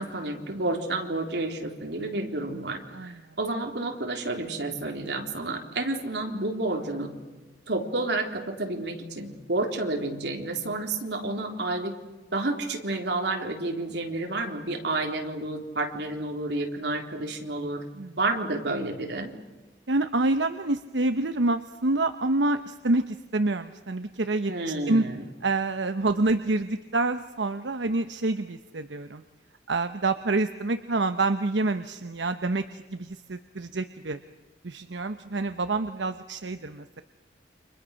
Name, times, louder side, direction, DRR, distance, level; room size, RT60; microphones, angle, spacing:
voice 1, 0.0-7.1 7.7-12.0 12.3-17.9 18.2-19.3 24.5-25.2, right 2 dB, 70° right, 3 dB, 3.7 m, -30 dB
voice 2, 2.9-3.3 17.9-18.2 19.9-24.5 24.9-25.1 25.4-29.2 29.7-34.2 34.6-37.0, right 2 dB, 90° right, 10 dB, 1.0 m, -27 dB
30.0 x 26.0 x 6.5 m, 1.2 s
head